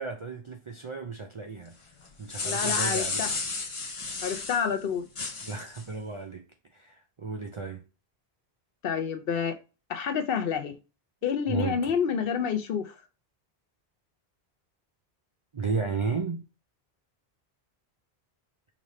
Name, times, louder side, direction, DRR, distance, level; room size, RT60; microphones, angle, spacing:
voice 1, 0.0-1.8 2.2-3.4 5.4-6.4 6.7-7.8 11.5-11.9 15.5-16.4, right 4 dB, 50° right, 0.4 m, -34 dB
sound 1, 2.0-4.6 5.1-5.8, left 3 dB, 35° left, 0.7 m, -32 dB
voice 2, 2.4-3.3 4.2-5.1 8.8-9.6 9.9-10.7 11.2-12.9, left 7 dB, 65° left, 0.8 m, -28 dB
5.1 x 2.5 x 3.2 m
omnidirectional pair, 1.1 m